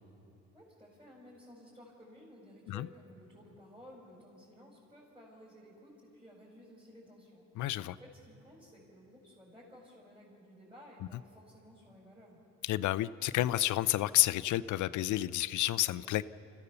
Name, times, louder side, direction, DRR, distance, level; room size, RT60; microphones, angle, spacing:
voice 1, 0.5-7.5 7.9-12.4, equal, 15° right, -6 dB, 5.4 m, -55 dB
voice 2, 7.6-8.0 12.6-16.3, left 15 dB, 75° left, 16 dB, 0.6 m, -30 dB
27.0 x 15.0 x 7.0 m, 2.9 s
cardioid pair, 90°, 30 cm